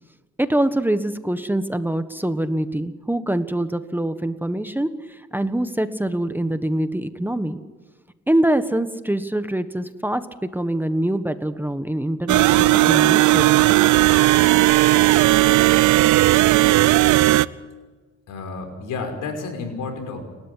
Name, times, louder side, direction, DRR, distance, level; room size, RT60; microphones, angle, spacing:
voice 1, 0.4-7.6 8.3-13.9, right 1 dB, 5° right, 10 dB, 1.4 m, -24 dB
sound 1, 12.3-17.5, right 17 dB, 80° right, 0.7 m, -15 dB
voice 2, 18.3-20.2, left 4 dB, 80° left, 5 dB, 5.6 m, -31 dB
30.0 x 13.0 x 9.9 m, 1.3 s
cardioid pair, 90°, 30 cm